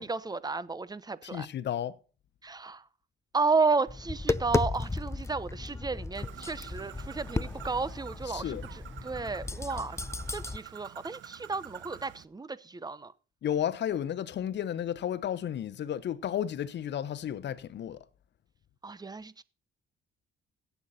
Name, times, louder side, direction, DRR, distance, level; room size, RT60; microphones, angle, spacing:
voice 1, 0.0-1.5 2.4-2.8 3.3-8.6 9.0-10.0 10.3-13.1 18.8-19.4, right 4 dB, 20° right, 0.9 m, -32 dB
voice 2, 1.2-2.0 8.2-8.7 13.4-18.0, left 10 dB, 60° left, 1.0 m, -33 dB
Tap, 3.9-10.6, left 3 dB, 15° left, 0.5 m, -34 dB
Bird, 6.1-12.2, right 12 dB, 70° right, 0.9 m, -48 dB
17.0 x 8.2 x 4.3 m
cardioid pair, 90°, 20 cm